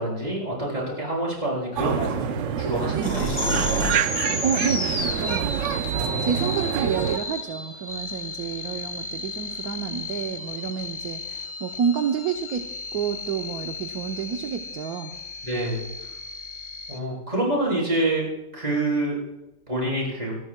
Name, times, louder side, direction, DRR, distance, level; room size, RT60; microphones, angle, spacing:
voice 1, 0.0-3.9 5.9-6.6 15.4-15.9 16.9-18.3 18.5-19.2 19.7-20.4, right 1 dB, 20° right, -5 dB, 7.6 m, -27 dB
sound 1, 1.8-7.2, right 9 dB, 80° right, 0.6 m, -27 dB
sound 2, 2.7-4.0 4.3-4.4 4.8-5.5, equal, 50° left, 6.5 m, -30 dB
sound 3, 3.3-17.0, left 1 dB, 20° left, 1.0 m, -33 dB
voice 2, 4.4-5.6 6.2-12.7 12.9-15.1, right 7 dB, 60° right, 5 dB, 1.2 m, -29 dB
25.0 x 20.0 x 2.2 m, 0.95 s
omnidirectional pair, 2.0 m